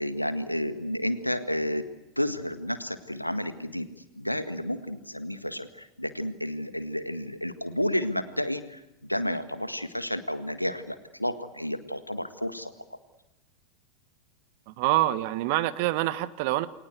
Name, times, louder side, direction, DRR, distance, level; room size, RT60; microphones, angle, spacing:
voice 1, 0.0-1.8 2.1-3.9 4.2-12.7, left 1 dB, 90° left, 10 dB, 1.8 m, -31 dB
voice 2, 14.7-16.7, right 16 dB, 45° right, 14 dB, 1.4 m, -26 dB
29.0 x 23.0 x 8.2 m, 1.0 s
figure-of-eight pair, 90°, 0 cm